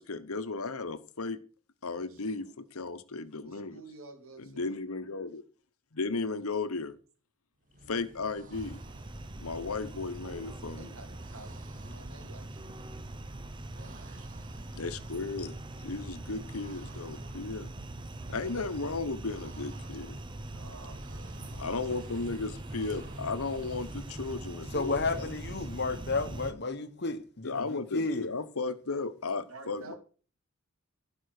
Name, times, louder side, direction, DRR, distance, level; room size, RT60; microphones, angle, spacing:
voice 1, 0.0-1.4 1.8-3.8 4.4-5.4 5.9-7.0 7.9-8.8 9.4-10.9 14.7-15.5 15.8-17.7 18.3-20.2 21.5-25.3 27.4-29.9, left 3 dB, 80° left, 1.1 m, -35 dB
voice 2, 2.0-2.5 3.3-4.8 10.7-12.8 13.7-14.6 20.5-21.8 29.5-30.0, right 2 dB, 70° right, 3.1 m, -51 dB
sound 1, 7.6-25.4, right 1 dB, 35° right, 1.3 m, -53 dB
sound 2, 8.5-26.5, right 1 dB, 20° right, 0.7 m, -42 dB
voice 3, 24.7-28.3, left 3 dB, 50° left, 1.1 m, -32 dB
16.0 x 5.6 x 6.5 m
head